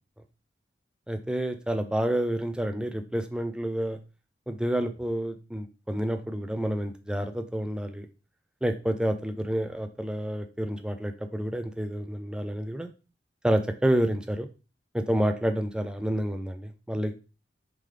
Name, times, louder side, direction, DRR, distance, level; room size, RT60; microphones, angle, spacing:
voice 1, 1.1-4.0 4.5-8.1 8.6-12.9 13.4-14.5 14.9-17.1, right 1 dB, 5° right, 6 dB, 0.4 m, -29 dB
3.7 x 3.1 x 3.1 m, 0.32 s
head